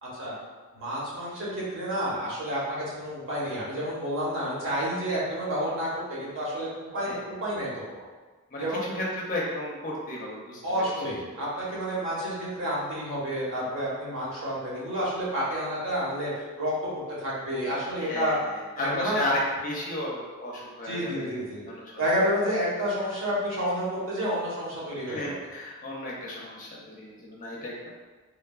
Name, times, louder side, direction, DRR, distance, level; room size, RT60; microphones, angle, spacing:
voice 1, 0.0-0.4 0.7-8.1 8.6-8.8 10.6-16.9 17.2-18.3 18.8-19.2 20.8-21.6 22.0-25.3, equal, 60° right, -7 dB, 0.9 m, -30 dB
voice 2, 8.5-11.1 18.0-21.3 21.6-22.1 25.1-27.9, left 1 dB, 35° left, -4 dB, 0.5 m, -33 dB
3.1 x 2.2 x 2.3 m, 1.3 s
head